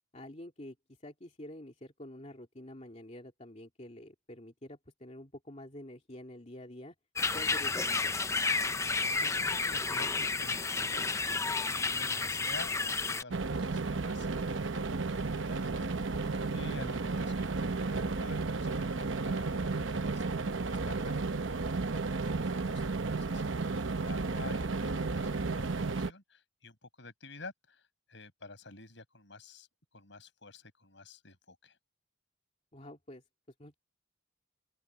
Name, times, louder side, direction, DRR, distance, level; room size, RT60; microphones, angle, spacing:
voice 1, 0.1-6.9 7.3-8.2 32.7-33.2 33.6-33.8, left 1 dB, 35° left, 2.7 m, -48 dB
sound 1, 7.2-13.2, left 4 dB, 15° left, 0.5 m, -31 dB
voice 2, 9.2-21.1 21.5-27.8 28.1-29.7 29.9-31.8, left 3 dB, 60° left, 7.1 m, -50 dB
sound 2, 13.3-26.1, right 3 dB, 70° right, 0.9 m, -33 dB
open air
head